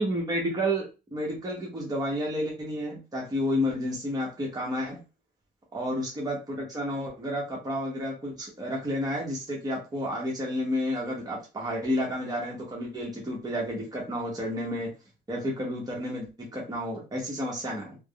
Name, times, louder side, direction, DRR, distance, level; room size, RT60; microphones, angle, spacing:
voice 1, 0.0-5.0 5.7-14.9 15.3-18.0, equal, 20° right, -3 dB, 0.9 m, -31 dB
3.4 x 2.0 x 2.3 m, 0.30 s
cardioid pair, 90°, 20 cm